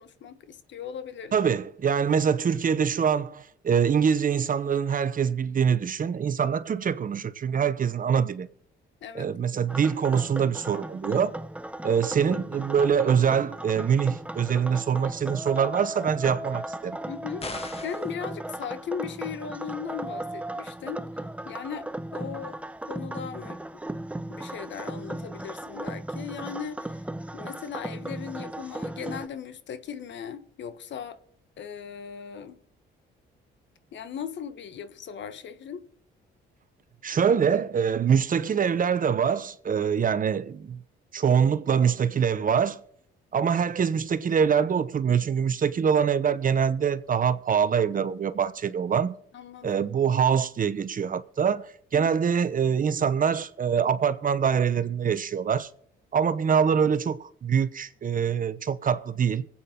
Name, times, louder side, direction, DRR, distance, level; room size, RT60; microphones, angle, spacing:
voice 1, 0.0-1.4 9.0-9.6 17.1-21.0 21.5-22.6 22.9-23.6 24.3-27.0 27.3-31.2 31.6-32.6 33.9-35.8 49.3-49.8 51.9-52.1, left 7 dB, 65° left, 1.4 m, -38 dB
voice 2, 1.3-8.5 9.1-11.4 11.8-17.0 37.0-40.8 41.1-42.8 43.3-49.2 49.6-55.7 56.1-59.5, right 7 dB, 45° right, 0.9 m, -24 dB
sound 1, 9.7-29.3, right 1 dB, 5° right, 0.7 m, -36 dB
sound 2, 17.4-18.1, left 3 dB, 30° left, 1.6 m, -37 dB
24.0 x 8.8 x 3.8 m
cardioid pair, 90°, 20 cm